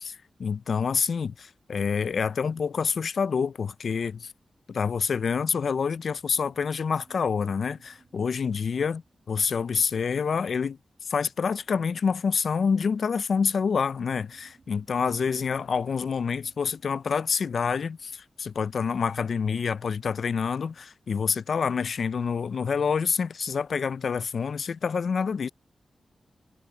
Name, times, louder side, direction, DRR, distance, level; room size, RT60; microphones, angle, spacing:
voice 1, 0.0-4.3 4.7-9.0 9.3-25.5, left 6 dB, 70° left, 0.3 m, -27 dB
sound 1, 5.4-10.3 13.7-18.6, right 4 dB, 55° right, 1.4 m, -61 dB
wide cardioid pair, 115°, 0 cm